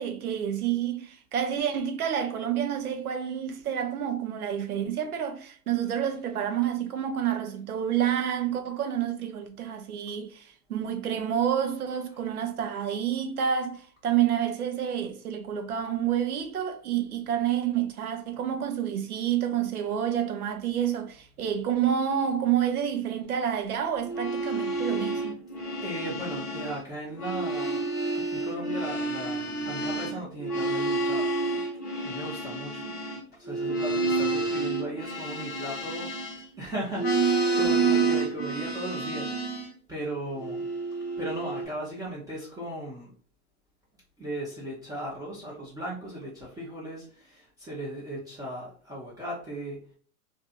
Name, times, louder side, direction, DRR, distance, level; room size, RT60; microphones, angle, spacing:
voice 1, 0.0-25.4, right 9 dB, 80° right, 0.7 m, -29 dB
sound 1, 24.0-26.8 27.1-36.6 36.9-39.7 40.4-41.6, right 3 dB, 20° left, 0.9 m, -29 dB
voice 2, 25.6-27.8 28.1-31.6 32.0-32.9 33.3-39.6 39.9-40.6 41.2-43.1 44.2-49.8, right 1 dB, 10° right, 0.6 m, -37 dB
2.6 x 2.5 x 2.4 m
hypercardioid pair, 105°, 44 cm